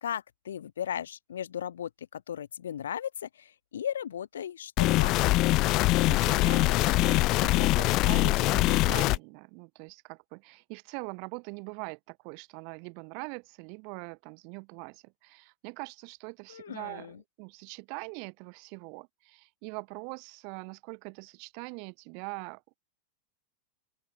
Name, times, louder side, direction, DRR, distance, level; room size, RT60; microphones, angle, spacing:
voice 1, 0.0-5.1 16.5-17.2, left 9 dB, 65° left, 1.2 m, -36 dB
sound 1, 4.8-9.2, left 20 dB, 40° left, 0.4 m, -23 dB
voice 2, 6.0-22.8, right 40 dB or more, 45° right, 2.6 m, -42 dB
open air
figure-of-eight pair, 90°, 0 cm